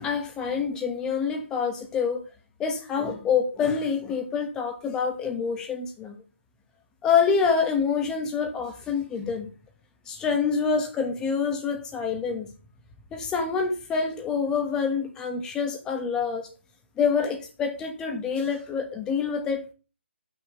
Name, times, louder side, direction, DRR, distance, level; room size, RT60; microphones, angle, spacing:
voice 1, 0.0-2.2 2.6-6.2 7.0-9.5 10.1-12.5 13.1-16.5 17.0-19.7, left 6 dB, 10° left, 1.3 m, -26 dB
9.2 x 6.2 x 6.5 m
hypercardioid pair, 160°, 6 cm